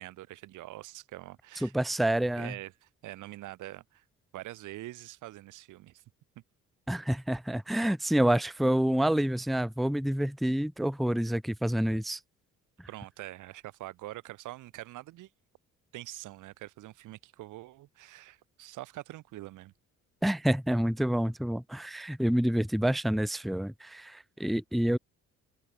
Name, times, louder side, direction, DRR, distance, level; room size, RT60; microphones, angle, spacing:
voice 1, 0.0-1.7 2.4-4.0 4.3-6.0 12.9-15.3 15.9-19.7, right 16 dB, 90° right, 1.7 m, -44 dB
voice 2, 1.6-2.5 6.9-12.2 20.2-25.0, right 1 dB, ahead, 0.5 m, -28 dB
cardioid pair, 90°, 30 cm